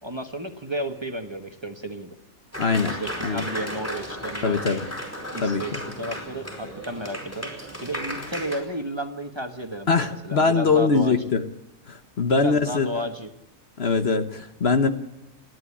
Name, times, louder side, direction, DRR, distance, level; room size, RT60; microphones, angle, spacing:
voice 1, 0.0-2.2 2.9-4.9 5.3-7.5 7.8-11.1 12.2-13.3, right 1 dB, 20° right, 6 dB, 1.3 m, -33 dB
Applause, 2.5-8.6, equal, 10° left, 5.1 m, -34 dB
voice 2, 2.6-3.0 3.2-3.4 4.4-4.8 5.4-5.6 9.9-11.4 11.9-13.0 13.8-14.9, left 4 dB, 50° left, 9 dB, 1.2 m, -22 dB
29.5 x 11.0 x 8.5 m, 0.94 s
omnidirectional pair, 1.4 m